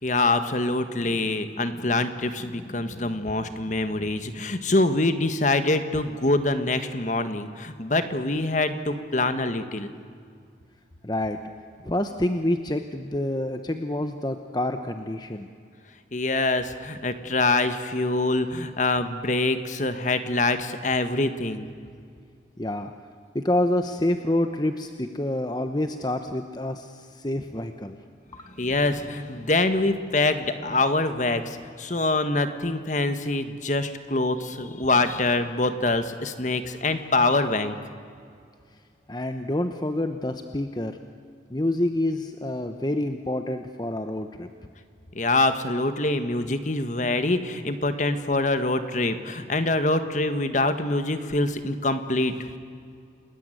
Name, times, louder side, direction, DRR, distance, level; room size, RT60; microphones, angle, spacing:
voice 1, 0.0-9.9 16.1-21.6 28.6-37.7 45.1-52.4, left 2 dB, 40° left, 9 dB, 1.6 m, -25 dB
voice 2, 11.0-11.4 11.8-15.5 22.6-22.9 23.3-28.0 28.3-28.5 39.1-41.0 41.5-44.5, left 1 dB, 20° left, 7 dB, 1.0 m, -27 dB
29.5 x 20.0 x 9.3 m, 2.3 s
head